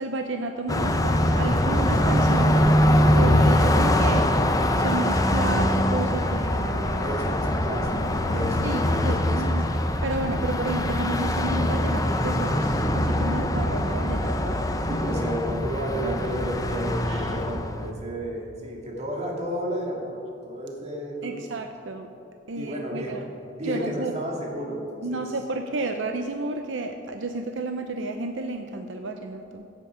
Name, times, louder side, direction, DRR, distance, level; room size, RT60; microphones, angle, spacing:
voice 1, 0.0-7.2 8.6-9.7 10.0-14.6 17.1-17.3 21.2-22.1 22.5-23.3 23.6-24.1 25.0-29.7, right 2 dB, 80° right, 5 dB, 0.7 m, -32 dB
Car passing by, 0.7-17.9, left 1 dB, 20° left, 0.6 m, -23 dB
voice 2, 2.6-3.5 7.0-9.4 10.3-10.5 14.9-21.4 22.5-23.2 23.5-25.3, right 1 dB, 35° right, -1 dB, 2.2 m, -32 dB
15.5 x 8.3 x 5.0 m, 2.6 s
head